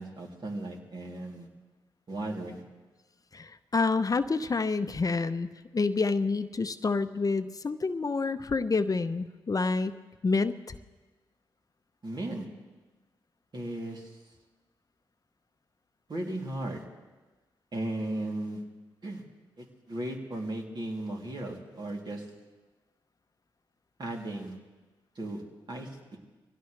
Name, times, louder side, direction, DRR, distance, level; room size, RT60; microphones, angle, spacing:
voice 1, 0.0-1.5 2.1-2.6 12.0-12.4 13.5-14.1 16.1-16.8 17.7-18.6 19.0-19.2 19.6-22.2 24.0-24.5 25.2-25.4 25.7-26.2, right 1 dB, 50° right, -1 dB, 2.9 m, -36 dB
voice 2, 3.3-9.9 10.2-10.7, left 4 dB, 40° left, 11 dB, 0.7 m, -28 dB
23.0 x 17.0 x 3.3 m, 1.2 s
supercardioid pair, 45°, 9 cm